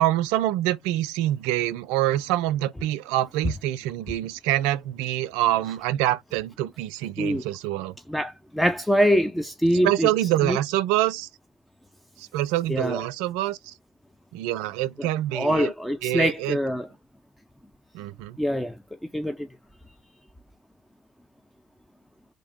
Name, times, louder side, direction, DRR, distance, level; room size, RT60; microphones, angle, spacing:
voice 1, 0.0-7.9 9.8-11.3 12.2-13.7 14.3-15.7 16.0-16.6 17.9-18.4, right 14 dB, 75° right, 0.4 m, -25 dB
voice 2, 8.1-10.1 10.4-10.6 12.7-13.0 15.0-15.1 15.3-16.9 18.4-18.8 19.1-19.5, equal, 5° left, 0.5 m, -24 dB
3.5 x 2.6 x 3.5 m
hypercardioid pair, 65°, 0 cm